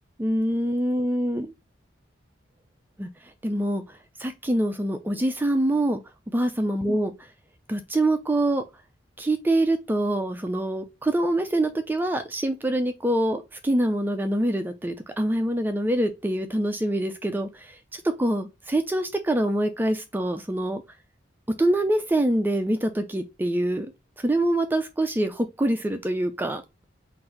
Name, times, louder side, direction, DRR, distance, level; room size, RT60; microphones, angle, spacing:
voice 1, 0.2-1.5 3.0-3.1 3.4-6.0 6.3-7.3 7.7-8.6 9.2-20.8 21.6-23.9 24.2-26.6, right 1 dB, 10° right, 0.3 m, -25 dB
3.9 x 2.6 x 4.3 m
head